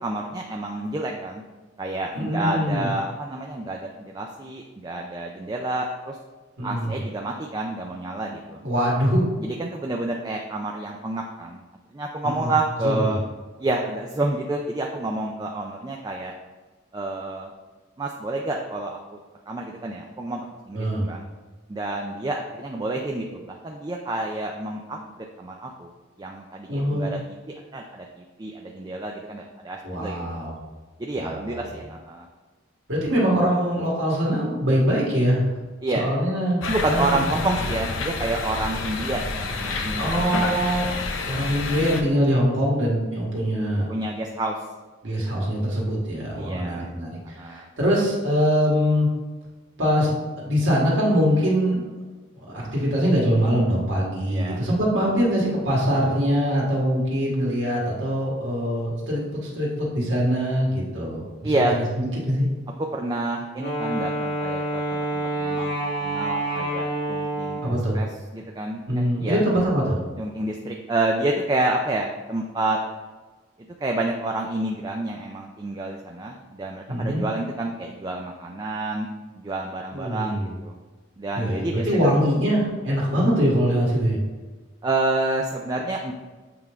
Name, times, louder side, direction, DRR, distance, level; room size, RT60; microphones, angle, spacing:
voice 1, 0.0-1.4 1.8-6.2 6.6-8.6 9.4-11.6 11.9-13.2 13.6-16.3 16.9-17.5 18.0-19.0 19.5-21.2 21.7-25.9 26.2-27.2 27.7-30.4 31.0-32.3 35.8-36.1 36.7-41.0 43.9-44.6 46.4-46.9 47.4-47.7 54.3-54.6 61.4-61.8 62.8-67.6 67.9-68.1 68.3-69.4 70.2-72.8 73.8-79.1 79.4-80.8 81.2-81.9 84.8-86.1, right 2 dB, 20° right, 1 dB, 0.4 m, -29 dB
voice 2, 2.1-2.9 6.6-7.0 8.6-9.2 12.2-12.5 12.8-13.2 20.7-21.0 26.7-27.1 29.8-30.5 31.1-31.8 32.9-35.5 35.9-36.6 36.9-37.2 39.9-40.8 41.2-43.9 45.0-49.1 49.8-51.8 52.3-62.5 67.6-68.0 68.9-70.0 76.9-77.2 79.9-80.5 81.3-84.2, equal, 75° right, -5 dB, 1.7 m, -23 dB
sound 1, 36.6-42.0, left 3 dB, 90° left, 0.6 m, -29 dB
Wind instrument woodwind instrument, 63.6-67.9, right 1 dB, 65° left, 1.5 m, -28 dB
7.7 x 3.6 x 3.5 m, 1.3 s
head